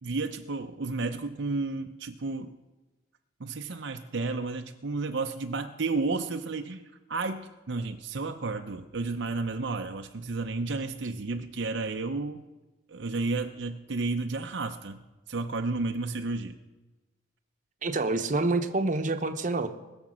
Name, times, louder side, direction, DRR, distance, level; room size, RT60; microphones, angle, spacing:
voice 1, 0.0-2.5 3.4-6.8 7.1-12.4 12.9-15.0 15.3-16.5, right 3 dB, 60° right, 5 dB, 0.7 m, -32 dB
voice 2, 17.8-19.7, right 2 dB, 40° right, 7 dB, 0.9 m, -27 dB
20.5 x 7.0 x 6.3 m, 1.1 s
head